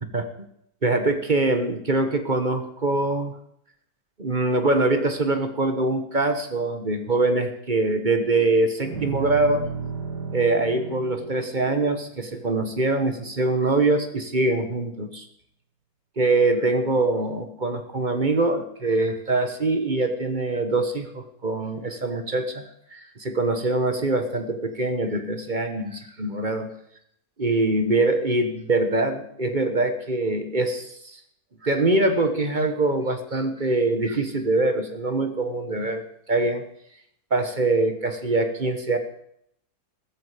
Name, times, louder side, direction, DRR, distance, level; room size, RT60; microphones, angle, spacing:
voice 1, 0.1-0.5 0.8-3.3 4.2-9.7 10.3-15.3 16.2-22.6 22.9-26.7 27.4-31.2 31.6-36.6 37.3-39.0, right 2 dB, 30° right, 8 dB, 1.3 m, -23 dB
sound 1, 8.9-13.3, right 5 dB, 80° right, 2.8 m, -35 dB
14.5 x 14.0 x 5.0 m, 0.71 s
omnidirectional pair, 1.7 m